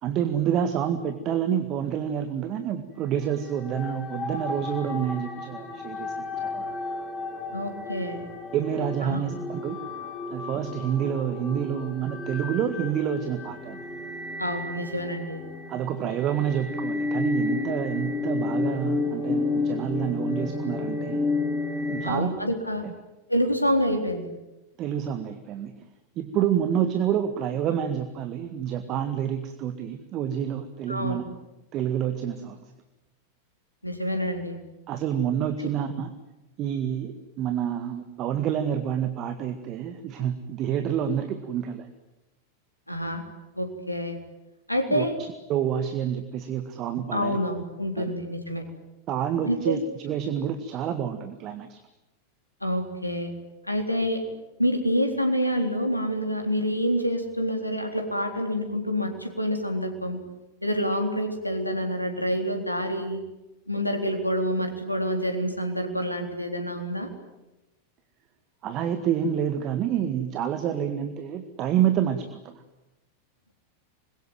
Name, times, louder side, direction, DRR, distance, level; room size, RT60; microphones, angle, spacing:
voice 1, 0.0-6.7 8.5-9.8 10.3-13.8 15.7-21.2 21.9-22.3 22.8-22.9 24.8-25.7 26.2-31.2 31.7-32.7 34.9-36.1 36.6-41.9 44.9-47.4 48.0-48.1 49.1-51.8 68.6-72.6, right 9 dB, 35° right, 9 dB, 1.9 m, -28 dB
sound 1, 3.2-22.1, left 3 dB, 25° left, 4.9 m, -32 dB
voice 2, 7.5-8.2 9.0-9.3 14.4-15.4 22.0-22.8 23.3-24.3 30.9-31.2 33.8-34.6 35.6-35.7 42.9-43.2 43.6-44.2 44.7-45.1 47.1-48.6 49.5-49.8 52.6-53.3 53.7-54.2 54.6-60.2 60.6-63.2 63.7-67.1, equal, 85° left, 5 dB, 3.8 m, -27 dB
26.0 x 22.5 x 9.4 m, 1.0 s
figure-of-eight pair, 90°, 0 cm